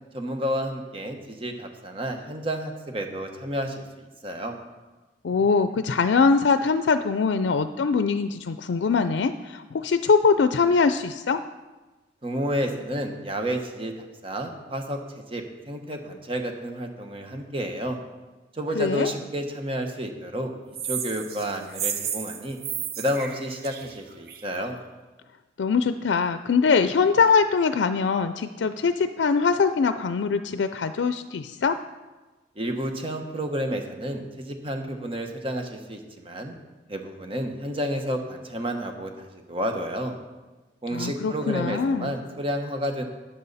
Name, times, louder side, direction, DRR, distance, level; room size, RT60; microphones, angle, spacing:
voice 1, 0.1-4.6 12.2-18.0 18.5-20.5 20.8-22.6 23.0-24.8 32.5-36.5 36.9-40.1 40.8-43.0, equal, 30° right, 4 dB, 1.2 m, -30 dB
voice 2, 5.2-11.4 18.8-19.1 25.6-31.8 40.9-42.1, left 5 dB, 90° left, 10 dB, 0.4 m, -22 dB
sound 1, 20.7-24.6, right 8 dB, 60° right, 0.9 m, -33 dB
12.0 x 9.6 x 4.1 m, 1.2 s
head